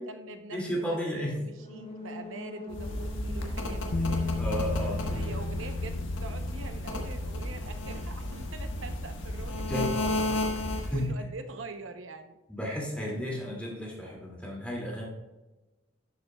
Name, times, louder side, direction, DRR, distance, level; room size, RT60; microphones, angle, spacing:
voice 1, 0.0-4.4 5.1-12.4, right 3 dB, 90° right, 7 dB, 0.8 m, -44 dB
voice 2, 0.5-1.3 4.4-5.3 9.7-10.2 10.8-11.2 12.5-15.0, equal, 5° left, -4 dB, 2.4 m, -33 dB
sound 1, 1.5-5.2 5.5-5.6, left 1 dB, 30° left, 1.0 m, -44 dB
sound 2, 2.7-11.1, left 1 dB, 80° left, 1.4 m, -33 dB
Bass guitar, 3.9-10.2, left 2 dB, 55° left, 0.5 m, -36 dB
11.5 x 7.0 x 2.3 m, 1.1 s
head